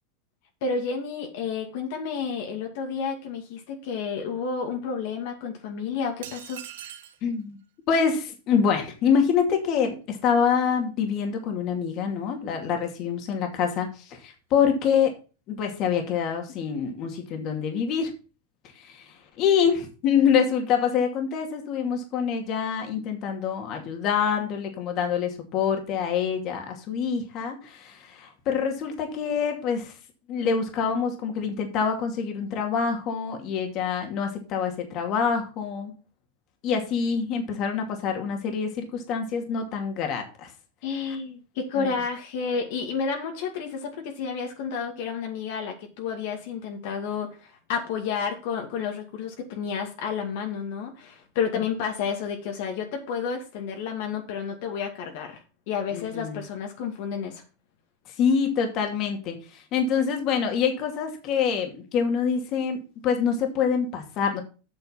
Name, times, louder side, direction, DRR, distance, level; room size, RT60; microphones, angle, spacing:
voice 1, 0.6-6.6 40.8-55.4 55.7-57.4, left 6 dB, 60° left, 3 dB, 2.2 m, -31 dB
sound 1, 6.2-7.2, right 11 dB, 75° right, 1.6 m, -41 dB
voice 2, 7.2-7.6 7.9-15.1 15.5-18.1 18.8-29.9 30.3-35.9 36.6-40.5 41.1-41.2 41.8-41.9 55.9-56.4 58.2-64.4, left 6 dB, 40° left, 4 dB, 2.5 m, -26 dB
8.2 x 6.5 x 5.7 m, 0.33 s
supercardioid pair, 145°, 0 cm